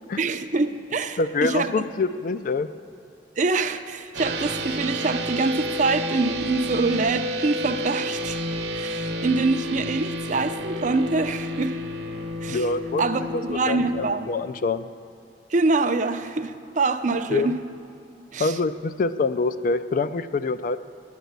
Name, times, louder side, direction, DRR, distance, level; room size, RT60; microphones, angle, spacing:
voice 1, 0.2-1.7 3.4-8.4 8.7-11.8 12.4-12.7 13.0-14.3 15.5-17.5 18.3-18.6, right 3 dB, 45° right, 9 dB, 0.5 m, -25 dB
voice 2, 1.2-2.7 12.5-13.1 13.3-14.9 17.3-17.5 18.4-20.8, left 3 dB, 50° left, 13 dB, 0.4 m, -25 dB
sound 1, 4.1-14.1, equal, 65° right, 1.0 m, -30 dB
9.7 x 9.1 x 8.0 m, 2.7 s
head